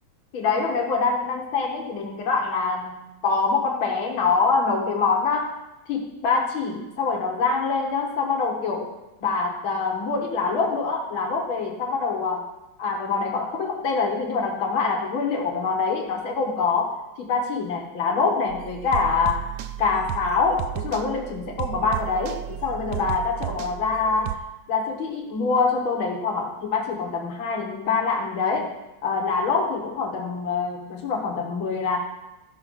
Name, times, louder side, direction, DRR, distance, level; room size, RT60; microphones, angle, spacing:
voice 1, 0.3-5.6 5.9-8.9 9.2-12.5 12.8-19.5 19.8-28.7 29.0-32.0, left 4 dB, 90° left, 1 dB, 2.1 m, -25 dB
sound 1, 18.5-24.4, right 13 dB, 70° right, 1.0 m, -33 dB
13.5 x 6.0 x 5.4 m, 0.98 s
omnidirectional pair, 2.2 m